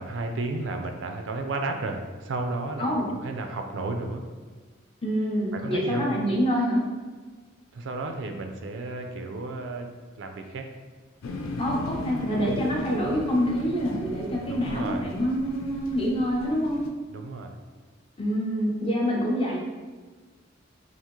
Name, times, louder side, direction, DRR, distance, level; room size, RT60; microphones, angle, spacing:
voice 1, 0.0-2.9 3.2-4.3 5.5-6.1 7.7-9.9 10.2-10.7 14.4-15.1 17.1-17.5, right 2 dB, 70° right, 4 dB, 0.4 m, -33 dB
voice 2, 2.8-3.1 5.0-6.8 11.6-16.8 18.2-19.6, equal, 30° left, -2 dB, 0.6 m, -26 dB
sound 1, 11.2-16.9, left 2 dB, 85° left, 0.4 m, -37 dB
3.6 x 2.5 x 2.9 m, 1.4 s
head